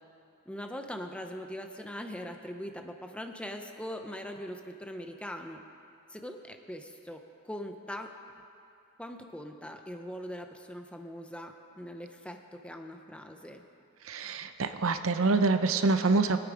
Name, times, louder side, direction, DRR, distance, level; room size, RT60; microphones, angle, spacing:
voice 1, 0.5-5.6 6.1-8.1 9.0-13.6, equal, 5° left, 4 dB, 0.7 m, -41 dB
voice 2, 14.0-16.4, right 3 dB, 75° right, 9 dB, 0.7 m, -26 dB
22.0 x 8.7 x 5.1 m, 2.6 s
head